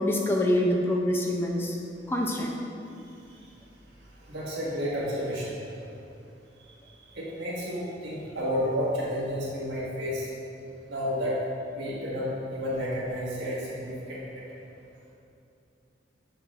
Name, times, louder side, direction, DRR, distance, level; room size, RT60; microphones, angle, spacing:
voice 1, 0.0-1.8 2.1-2.5, left 1 dB, 15° left, 0 dB, 0.4 m, -25 dB
voice 2, 4.3-5.6 6.9-10.3 10.9-11.3 11.7-14.4, equal, 70° right, -6 dB, 1.5 m, -31 dB
7.1 x 5.4 x 2.4 m, 2.6 s
head